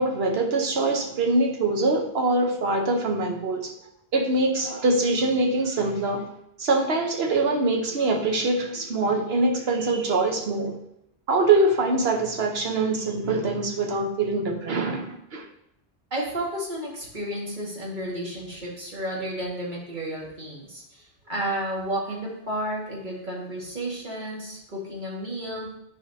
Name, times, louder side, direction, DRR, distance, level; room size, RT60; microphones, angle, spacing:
voice 1, 0.0-3.7 4.1-6.2 6.6-10.8 11.3-15.4, right 2 dB, 70° right, 3 dB, 1.2 m, -24 dB
voice 2, 16.1-25.7, right 1 dB, 45° right, -4 dB, 2.1 m, -32 dB
11.0 x 4.8 x 2.8 m, 0.79 s
omnidirectional pair, 1.1 m